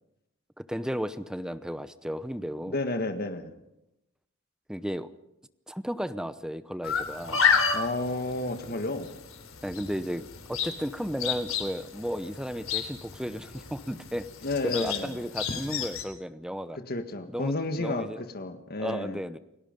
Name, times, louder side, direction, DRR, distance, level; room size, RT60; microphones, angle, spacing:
voice 1, 0.6-2.8 4.7-5.1 5.7-7.4 9.6-14.3 14.6-16.8 17.3-18.2 18.8-19.4, equal, 5° right, 13 dB, 0.8 m, -34 dB
voice 2, 2.7-3.5 7.7-9.1 14.4-15.1 16.7-19.2, left 2 dB, 50° left, 7 dB, 1.7 m, -31 dB
sound 1, 6.8-16.0, left 6 dB, 90° left, 3.5 m, -31 dB
29.0 x 18.0 x 5.3 m, 0.90 s
head